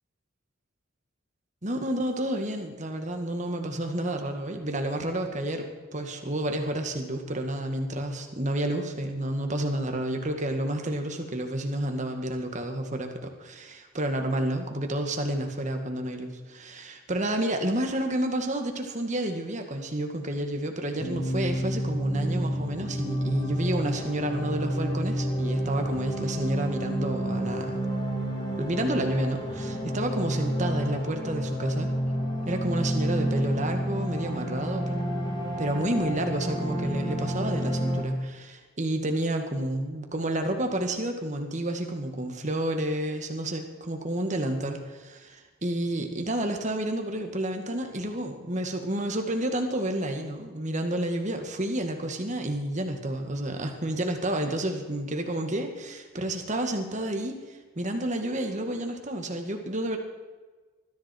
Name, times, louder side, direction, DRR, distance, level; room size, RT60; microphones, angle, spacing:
voice 1, 1.6-27.8 28.6-31.9 32.5-35.0 35.6-60.0, right 1 dB, 35° right, 4 dB, 1.9 m, -30 dB
Stasis (music for space), 21.0-38.0, equal, 20° left, 4.4 m, -30 dB
21.0 x 14.0 x 4.6 m, 1.3 s
head